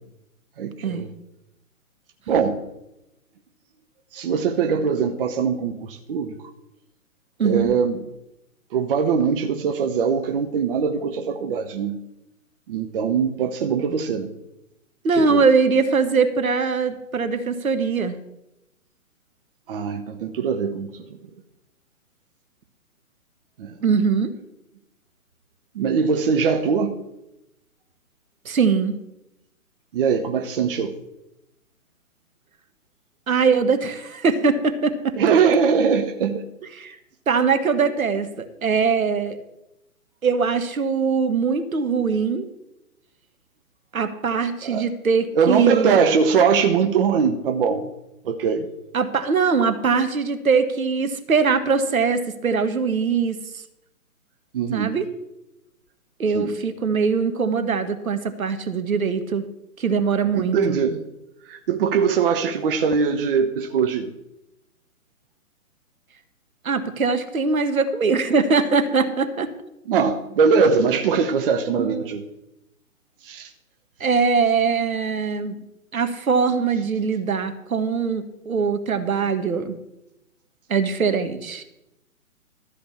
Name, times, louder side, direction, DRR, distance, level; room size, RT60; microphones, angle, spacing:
voice 1, 0.6-1.1 2.3-2.6 4.1-6.4 7.4-8.0 8.7-12.0 12.7-14.3 15.1-15.4 19.7-21.0 23.6-23.7 25.7-27.0 29.9-31.0 35.2-36.4 44.6-44.9 45.3-47.9 48.2-48.7 54.5-54.9 56.3-56.6 60.3-61.0 61.5-64.1 69.9-72.2 73.2-73.5, right 6 dB, 40° right, 0.8 m, -21 dB
voice 2, 15.0-18.1 23.8-24.3 28.4-28.9 33.3-35.1 36.8-37.0 37.3-39.4 40.2-42.5 43.9-46.0 48.9-53.4 54.7-55.1 56.2-59.5 59.8-60.8 66.6-69.5 71.7-72.1 74.0-75.6 75.9-79.8 80.7-81.6, right 5 dB, 70° right, 1.4 m, -22 dB
13.0 x 5.0 x 8.4 m
figure-of-eight pair, 130°, 43 cm